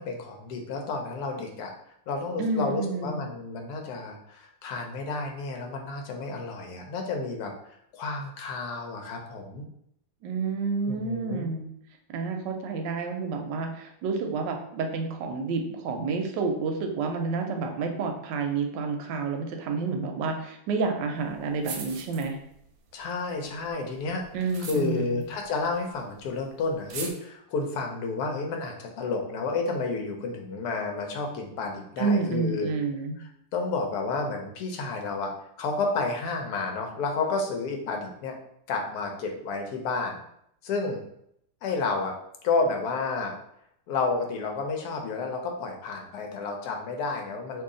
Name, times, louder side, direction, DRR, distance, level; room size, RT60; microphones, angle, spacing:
voice 1, 0.0-1.7 2.1-7.5 7.9-9.7 10.9-11.5 22.9-32.7 33.2-35.3 35.6-38.3 38.7-40.2 40.6-41.0 41.6-42.1 42.4-43.3 43.9-47.6, left 3 dB, 70° left, 2 dB, 1.0 m, -31 dB
voice 2, 2.4-3.2 10.2-11.7 12.1-22.4 24.3-25.2 32.0-33.2, right 4 dB, 75° right, 4 dB, 1.1 m, -29 dB
sound 1, 21.3-21.4 21.6-22.7 23.0-26.1 26.4-26.5 26.7-27.1, right 5 dB, 90° right, 1.4 m, -40 dB
2.8 x 2.7 x 3.7 m, 0.73 s
omnidirectional pair, 2.1 m